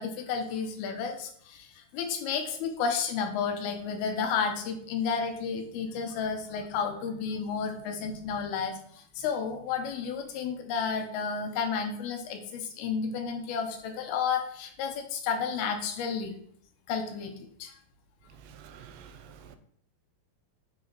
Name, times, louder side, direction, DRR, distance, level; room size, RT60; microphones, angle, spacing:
voice 1, 0.0-16.3 16.9-17.3 17.6-17.7, left 6 dB, 80° left, 2.8 m, -32 dB
voice 2, 18.4-19.6, right 8 dB, 85° right, 2.5 m, -49 dB
6.1 x 4.0 x 4.4 m
omnidirectional pair, 4.4 m